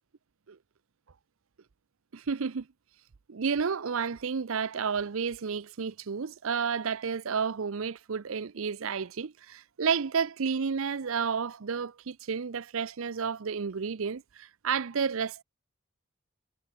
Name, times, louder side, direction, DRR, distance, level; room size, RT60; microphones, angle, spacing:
voice 1, 2.1-2.7 3.3-15.4, right 6 dB, 70° right, 0.6 m, -31 dB
head